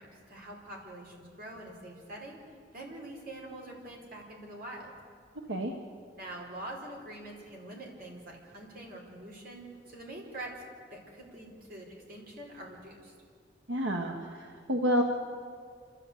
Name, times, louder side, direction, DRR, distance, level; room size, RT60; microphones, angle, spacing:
voice 1, 0.0-2.4 2.7-4.9 6.1-10.5 10.9-13.1, right 1 dB, 55° right, -1 dB, 5.0 m, -45 dB
voice 2, 13.7-15.0, equal, 90° right, 1 dB, 1.6 m, -29 dB
28.5 x 13.5 x 8.3 m, 2.2 s
head